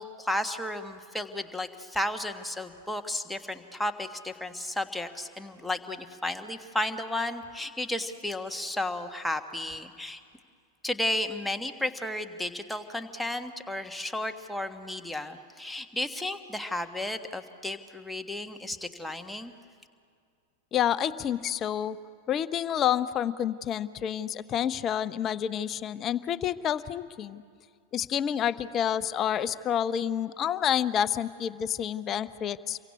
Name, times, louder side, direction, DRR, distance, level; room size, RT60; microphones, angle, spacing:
voice 1, 0.0-10.2 10.8-19.5, left 1 dB, 5° left, 6 dB, 1.5 m, -33 dB
voice 2, 20.7-22.0 22.3-27.4 27.9-32.8, left 9 dB, 30° left, 15 dB, 0.8 m, -29 dB
28.5 x 23.5 x 8.4 m, 2.2 s
figure-of-eight pair, 90°, 0 cm